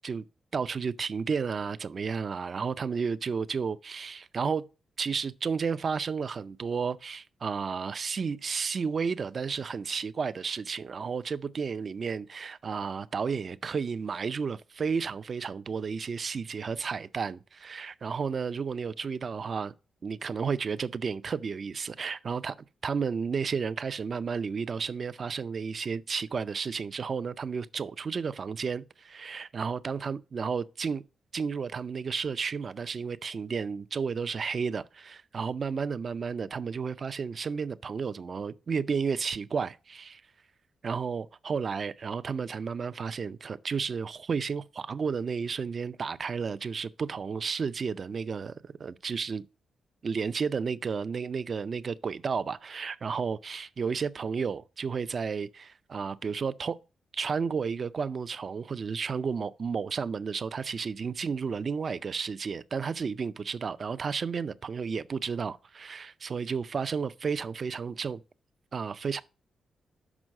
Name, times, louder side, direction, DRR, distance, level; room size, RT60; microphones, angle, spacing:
voice 1, 0.5-4.7 5.0-19.7 20.0-22.6 22.8-31.0 31.3-40.2 40.8-49.5 50.0-56.8 57.1-68.2 68.7-69.2, right 5 dB, 50° right, 0.5 m, -32 dB
6.1 x 5.4 x 6.3 m
cardioid pair, 95°, 0 cm